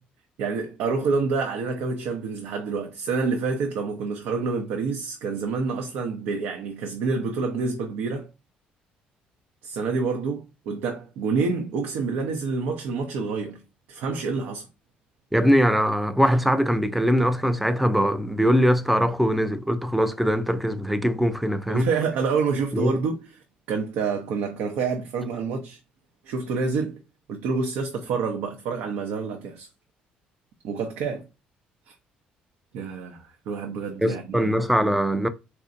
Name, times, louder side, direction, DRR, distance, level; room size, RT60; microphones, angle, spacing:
voice 1, 0.4-8.3 9.6-13.6 13.9-14.7 21.7-23.2 23.7-25.8 26.2-27.0 27.3-29.7 30.6-31.3 32.7-34.5, right 4 dB, 80° right, 0.6 m, -27 dB
voice 2, 15.3-21.9 22.7-23.0 34.0-35.3, equal, ahead, 0.3 m, -22 dB
4.2 x 2.6 x 2.5 m
cardioid pair, 145°, 3 cm